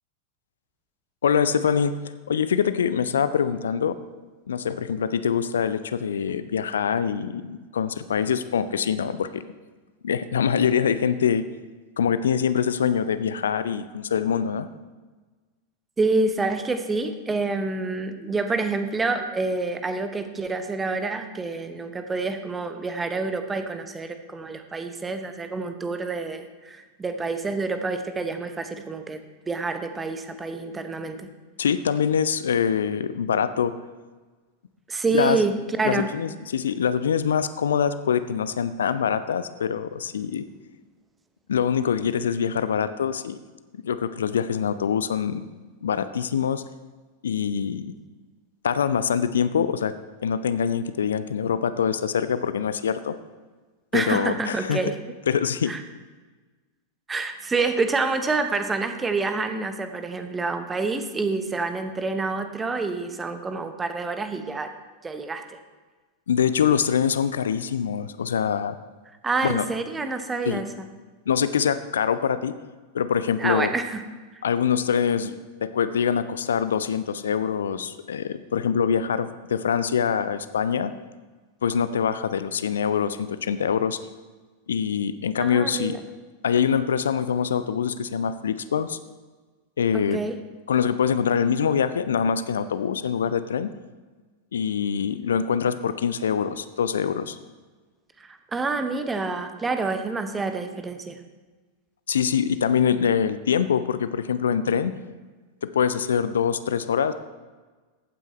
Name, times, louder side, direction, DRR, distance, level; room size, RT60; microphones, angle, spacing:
voice 1, 1.2-1.9 2.3-4.0 4.5-9.4 10.0-11.4 12.0-14.7 31.6-33.7 35.1-35.4 35.8-40.4 41.5-43.4 43.8-45.4 45.8-46.6 47.2-47.8 48.6-49.9 50.2-53.2 53.9-54.8 55.3-55.7 66.3-68.8 69.4-69.7 70.5-70.6 71.3-72.5 72.9-73.7 74.4-80.9 81.6-84.0 84.7-86.0 86.4-89.0 89.8-90.2 90.7-93.7 94.5-97.4 102.1-104.9 105.6-107.1, left 7 dB, 65° left, 13 dB, 0.4 m, -24 dB
voice 2, 16.0-31.3 34.9-36.1 53.9-55.0 55.7-55.8 57.1-64.7 65.0-65.6 69.2-70.7 73.4-74.0 85.4-86.0 89.9-90.4 98.2-101.2, right 3 dB, 15° right, 8 dB, 0.9 m, -27 dB
15.0 x 9.0 x 3.2 m, 1.3 s
figure-of-eight pair, 90°, 0 cm